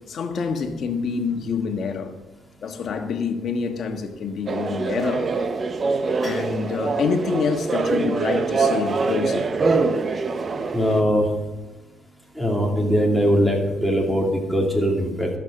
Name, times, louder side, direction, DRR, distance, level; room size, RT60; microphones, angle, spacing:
voice 1, 0.1-2.2 2.6-5.3 6.2-9.5, left 5 dB, 60° left, 1.4 m, -26 dB
sound 1, 4.5-11.0, right 4 dB, 40° right, 0.8 m, -24 dB
voice 2, 10.7-11.3 12.3-15.3, equal, ahead, 2.8 m, -21 dB
13.0 x 7.5 x 6.5 m
cardioid pair, 90°, 0 cm